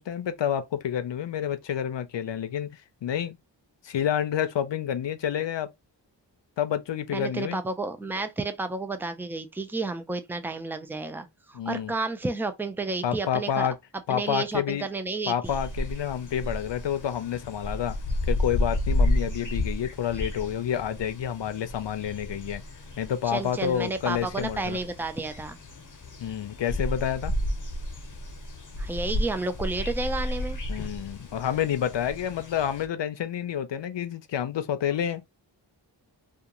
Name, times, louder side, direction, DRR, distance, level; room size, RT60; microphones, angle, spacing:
voice 1, 0.0-2.7 3.0-3.4 3.8-5.7 6.6-7.6 11.5-11.9 13.0-13.8 14.1-14.9 15.3-18.0 18.3-22.6 23.0-24.8 26.2-27.3 30.7-35.2, left 9 dB, 75° left, 0.6 m, -29 dB
voice 2, 7.1-13.7 14.1-15.5 23.2-25.6 28.8-30.6, right 3 dB, 5° right, 0.4 m, -31 dB
sound 1, 15.4-32.9, left 1 dB, 45° left, 0.9 m, -32 dB
2.4 x 2.3 x 2.9 m
wide cardioid pair, 50°, 44 cm